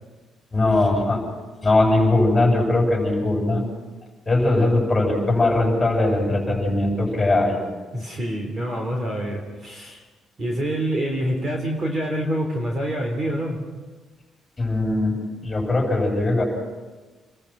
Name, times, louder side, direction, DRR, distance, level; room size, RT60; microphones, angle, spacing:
voice 1, 0.5-1.2 1.6-3.6 4.3-7.6 14.6-15.2 15.4-16.4, left 2 dB, 15° left, 0 dB, 7.8 m, -20 dB
voice 2, 7.9-10.0 10.4-13.6, right 1 dB, 30° right, 2 dB, 3.5 m, -26 dB
29.5 x 22.0 x 6.0 m, 1.3 s
cardioid pair, 175°, 0 cm